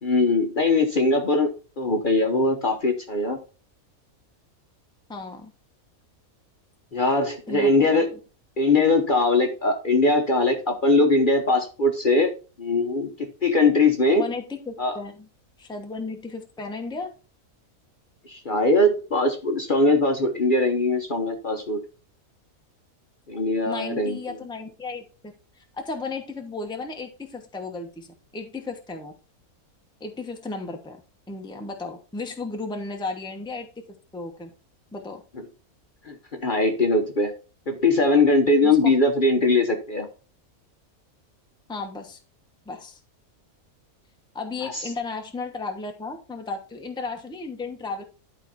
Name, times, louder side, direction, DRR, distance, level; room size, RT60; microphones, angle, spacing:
voice 1, 0.0-3.4 6.9-8.1 8.6-14.2 14.8-15.0 18.2-21.8 23.3-24.4 36.1-37.3 37.7-40.1 44.7-44.8, left 2 dB, 40° left, 4 dB, 1.0 m, -21 dB
voice 2, 5.1-5.5 7.5-8.2 14.2-15.3 15.6-17.1 23.7-25.3 25.7-28.1 28.3-29.1 30.0-31.0 31.3-33.8 34.1-34.5 34.9-35.2 38.6-38.9 41.7-42.2 42.7-43.0 44.3-48.0, left 3 dB, 5° left, 3 dB, 0.9 m, -34 dB
11.5 x 4.5 x 4.2 m, 0.35 s
omnidirectional pair, 1.5 m